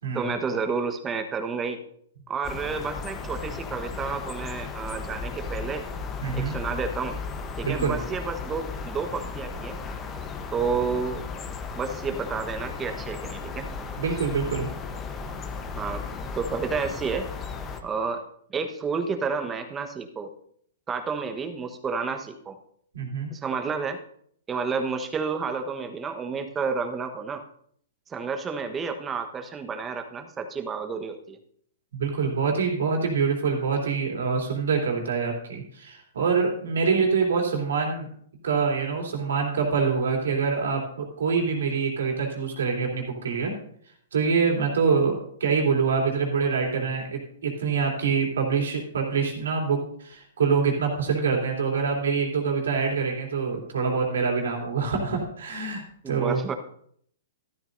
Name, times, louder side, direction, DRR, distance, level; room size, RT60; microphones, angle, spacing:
voice 1, 0.1-1.8 2.3-5.9 6.3-7.2 7.6-9.8 10.5-11.2 11.8-13.7 15.8-16.0 16.3-17.3 17.8-18.2 18.5-20.3 20.9-22.6 23.3-24.0 24.5-27.4 28.1-31.4 56.0-56.5, right 5 dB, 20° right, 7 dB, 1.2 m, -30 dB
sound 1, 2.4-17.8, left 4 dB, 20° left, 1.0 m, -35 dB
voice 2, 6.2-6.5 7.6-8.0 14.0-14.7 22.9-23.3 31.9-38.1 38.4-43.5 44.1-45.1 45.4-56.4, right 5 dB, 75° right, 0 dB, 3.3 m, -25 dB
13.0 x 12.5 x 2.7 m, 0.64 s
hypercardioid pair, 125°, 0 cm